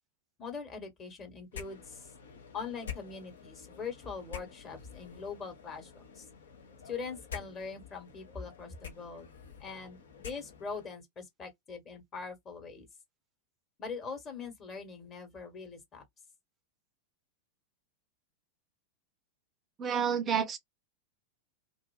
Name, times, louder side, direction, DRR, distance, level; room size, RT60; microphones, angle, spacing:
voice 1, 0.4-2.0 2.5-6.3 6.8-9.3 9.6-10.0 10.2-12.9 13.8-16.0, left 5 dB, 25° left, 1.2 m, -42 dB
sound 1, 1.5-10.9, left 7 dB, 65° left, 0.7 m, -48 dB
voice 2, 19.8-20.6, right 7 dB, 25° right, 0.5 m, -29 dB
2.5 x 2.5 x 2.3 m
figure-of-eight pair, 90°, 0 cm